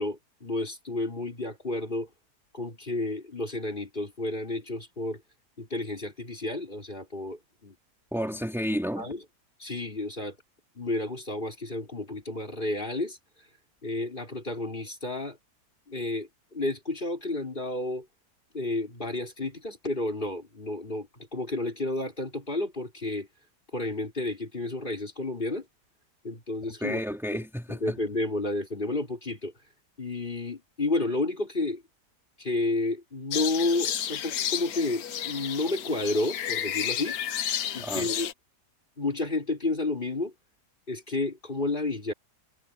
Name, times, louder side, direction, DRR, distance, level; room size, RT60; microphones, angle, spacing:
voice 1, 0.0-2.1 2.5-5.2 5.6-7.8 9.0-9.2 9.6-10.4 10.8-13.2 13.8-15.4 15.9-18.1 18.5-23.3 23.7-25.7 26.2-27.0 27.3-27.4 27.7-29.5 30.0-31.8 32.4-37.2 37.7-38.3 39.0-40.3 40.9-42.1, left 2 dB, 30° left, 5.3 m, -31 dB
voice 2, 8.1-9.1 26.8-28.0 37.8-38.1, equal, ahead, 4.0 m, -31 dB
sound 1, 33.3-38.3, left 10 dB, 65° left, 1.3 m, -32 dB
omnidirectional pair, 1.7 m